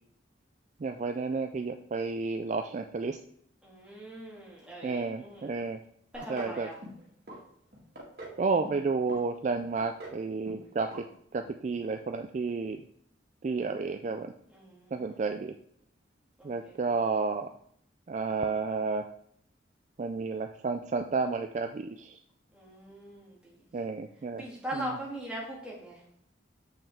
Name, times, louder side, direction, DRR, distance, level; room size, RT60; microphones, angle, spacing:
voice 1, 0.8-3.2 4.8-5.8 6.3-6.7 8.4-11.0 11.3-12.8 13.4-14.3 14.9-15.5 16.4-17.5 18.1-19.1 20.0-22.2 23.7-24.4 24.7-25.0, right 4 dB, 40° right, 6 dB, 0.3 m, -31 dB
voice 2, 3.6-5.5 6.1-6.8 14.5-15.2 16.4-16.9 22.5-23.7 24.3-26.0, right 1 dB, 5° right, -5 dB, 2.1 m, -41 dB
sound 1, 6.1-6.6 6.8-7.4 7.7-8.4 8.6-9.2 9.5-10.2 10.4-10.7 10.9-11.0 11.4-11.5, right 1 dB, 55° right, 2.0 m, -44 dB
7.3 x 5.5 x 3.5 m, 0.68 s
head